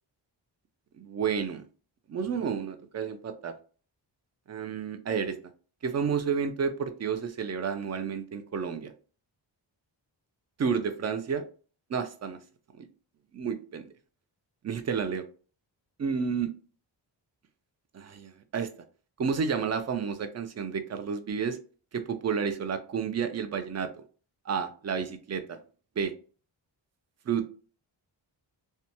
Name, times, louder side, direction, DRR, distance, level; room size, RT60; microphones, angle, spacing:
voice 1, 1.0-1.6 2.1-3.5 4.5-5.4 5.8-8.9 10.6-11.5 11.9-12.4 12.8-12.9 13.3-13.9 14.6-15.2 16.0-16.5 17.9-18.7 19.2-21.6 21.9-23.9 24.5-25.6 26.0-26.1 27.3-27.5, right 6 dB, 35° right, 9 dB, 0.5 m, -31 dB
2.8 x 2.2 x 2.6 m, 0.39 s
cardioid pair, 80°, 45 cm